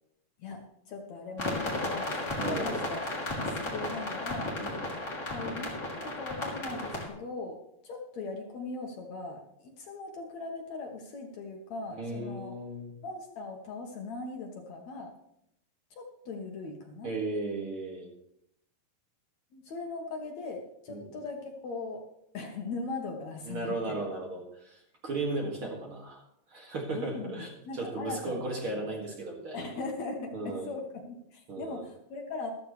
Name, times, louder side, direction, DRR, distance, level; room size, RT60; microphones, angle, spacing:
voice 1, 0.4-2.8 3.4-7.6 7.8-12.5 13.0-15.1 15.9-17.1 19.5-22.0 22.3-24.0 26.9-29.0 29.5-32.5, left 3 dB, 65° left, 2 dB, 2.2 m, -40 dB
sound 1, 1.4-7.1, left 1 dB, 25° left, 2.6 m, -34 dB
voice 2, 2.4-2.8 4.6-4.8 12.0-12.9 17.0-18.1 20.9-21.1 23.4-26.2 26.5-29.6 30.3-30.7 31.5-31.8, right 2 dB, 45° right, -1 dB, 2.6 m, -36 dB
14.0 x 13.0 x 3.2 m, 0.75 s
omnidirectional pair, 3.9 m